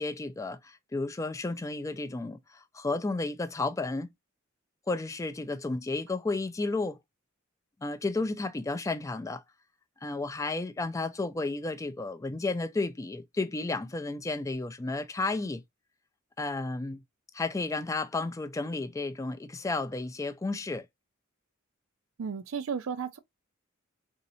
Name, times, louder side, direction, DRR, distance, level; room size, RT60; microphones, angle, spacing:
voice 1, 0.0-4.1 4.9-7.0 7.8-9.4 10.0-15.6 16.4-17.0 17.3-20.9, left 3 dB, 15° left, 0.3 m, -32 dB
voice 2, 22.2-23.2, right 6 dB, 75° right, 0.4 m, -33 dB
3.9 x 2.7 x 2.6 m
head